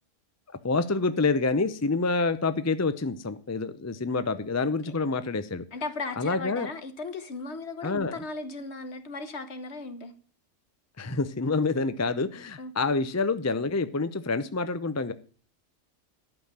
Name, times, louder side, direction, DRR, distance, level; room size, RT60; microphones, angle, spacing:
voice 1, 0.6-5.6 6.2-6.7 7.8-8.2 11.0-15.1, left 3 dB, 20° left, 12 dB, 0.5 m, -27 dB
voice 2, 5.7-10.1 12.6-12.7, left 3 dB, 60° left, 10 dB, 1.5 m, -36 dB
12.0 x 5.7 x 8.8 m, 0.41 s
omnidirectional pair, 1.3 m